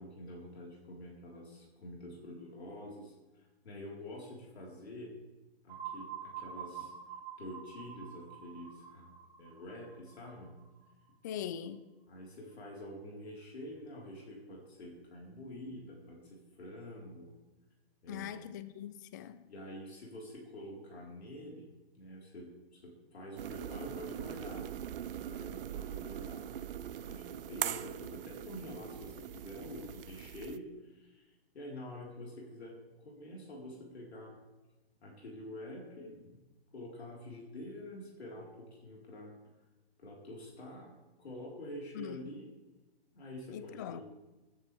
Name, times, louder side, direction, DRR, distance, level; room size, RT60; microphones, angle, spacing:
voice 1, 0.0-5.2 5.6-6.9 7.4-10.6 12.1-17.4 18.0-18.5 19.5-24.8 25.2-34.3 35.0-36.4 36.7-39.3 40.0-40.9 41.2-42.5 43.1-44.0, left 1 dB, 75° left, 4.5 m, -47 dB
sound 1, 5.7-11.4, right 8 dB, 15° right, 2.0 m, -47 dB
voice 2, 11.2-11.8 18.1-19.5 41.9-42.3 43.5-44.0, left 9 dB, 20° left, 0.3 m, -42 dB
sound 2, 23.4-30.6, right 10 dB, 60° right, 0.7 m, -41 dB
20.5 x 11.0 x 3.5 m
hypercardioid pair, 140°, 32 cm